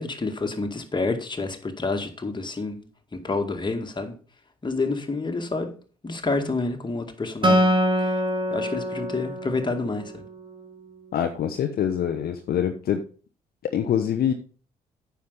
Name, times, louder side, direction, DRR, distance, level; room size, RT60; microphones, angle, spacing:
voice 1, 0.0-2.8 3.1-4.1 4.6-5.7 6.0-8.1 8.5-10.2, left 3 dB, 25° left, 2.0 m, -28 dB
Acoustic guitar, 7.4-10.9, equal, 25° right, 2.3 m, -25 dB
voice 2, 11.1-13.0 13.6-14.3, left 9 dB, 50° left, 0.8 m, -25 dB
9.4 x 5.8 x 5.2 m
figure-of-eight pair, 45°, 20 cm